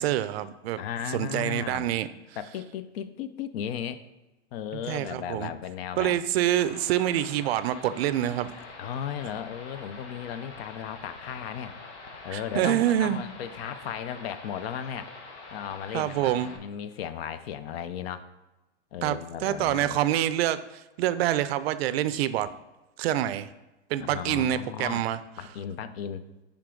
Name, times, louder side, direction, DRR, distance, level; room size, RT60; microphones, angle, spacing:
voice 1, 0.0-0.8 1.1-2.1 4.9-5.5 6.0-8.5 12.3-13.2 15.9-16.5 19.0-20.6 21.0-22.5 23.0-23.5 23.9-25.2, right 12 dB, 60° right, 14 dB, 0.5 m, -26 dB
voice 2, 0.8-2.0 2.4-4.0 4.5-6.2 8.8-11.8 12.2-15.1 15.5-18.3 18.9-20.0 24.0-25.0 25.4-26.4, left 9 dB, 55° left, 13 dB, 0.6 m, -35 dB
sound 1, 6.6-16.6, left 3 dB, 75° left, 1.4 m, -45 dB
9.8 x 3.5 x 3.7 m, 1.0 s
hypercardioid pair, 130°, 36 cm